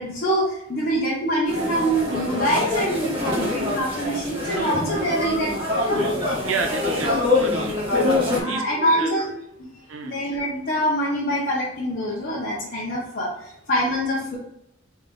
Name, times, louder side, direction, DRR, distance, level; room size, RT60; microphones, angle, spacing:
voice 1, 0.0-6.0 8.2-9.3 9.6-9.7 10.0-14.4, equal, 45° left, -7 dB, 1.1 m, -25 dB
sound 1, 1.5-8.4, left 2 dB, 25° right, 1.7 m, -25 dB
voice 2, 4.4-4.8 6.4-7.7 8.3-9.3 9.9-10.2, right 4 dB, 80° right, 4 dB, 0.6 m, -30 dB
4.2 x 3.4 x 3.5 m, 0.80 s
head